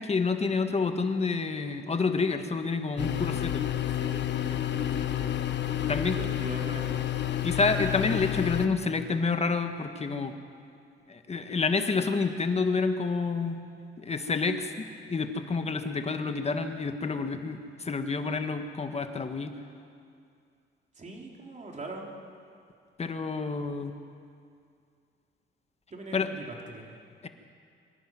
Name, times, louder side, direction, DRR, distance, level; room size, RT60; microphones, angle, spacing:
voice 1, 0.0-3.7 5.9-6.2 7.4-10.3 11.1-13.7 14.0-14.7 15.1-19.5 23.0-23.9 26.1-26.3 27.2-27.3, left 4 dB, 30° left, 7 dB, 1.6 m, -28 dB
sound 1, 3.0-8.7, left 11 dB, 60° left, 1.2 m, -30 dB
voice 2, 3.9-5.4 5.6-5.8 6.2-7.0 21.0-22.1 25.9-27.0, right 2 dB, 35° right, 0 dB, 3.9 m, -42 dB
24.0 x 11.5 x 9.4 m, 2.4 s
cardioid pair, 90°, 20 cm